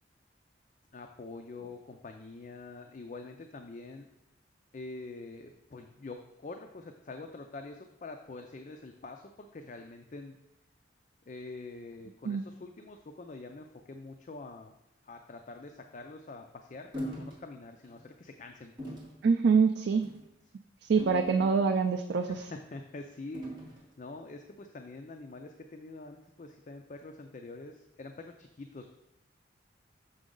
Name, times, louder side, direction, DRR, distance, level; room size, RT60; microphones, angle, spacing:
voice 1, 0.9-4.1 4.7-10.4 11.3-14.7 15.0-18.7 22.3-28.9, left 3 dB, 40° left, 5 dB, 0.4 m, -45 dB
sound 1, 16.9-17.4 17.8-18.0 18.8-19.2 19.9-20.2 21.0-21.9 23.3-23.9, equal, 25° right, 1.7 m, -41 dB
voice 2, 19.2-20.1 20.8-22.5, right 5 dB, 65° right, 5 dB, 0.4 m, -25 dB
6.3 x 6.0 x 3.8 m, 0.86 s
head